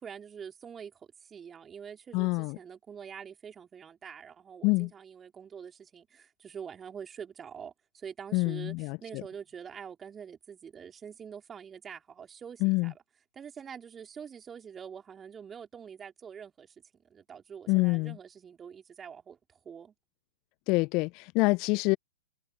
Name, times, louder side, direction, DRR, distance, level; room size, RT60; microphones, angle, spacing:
voice 1, 0.0-12.9 13.3-16.7 17.1-19.4 19.6-19.9, right 7 dB, 15° right, 4.2 m, -45 dB
voice 2, 2.1-2.6 4.6-4.9 8.3-9.2 12.6-12.9 17.7-18.2 20.7-22.0, left 26 dB, 35° left, 0.6 m, -26 dB
figure-of-eight pair, 110°, 0 cm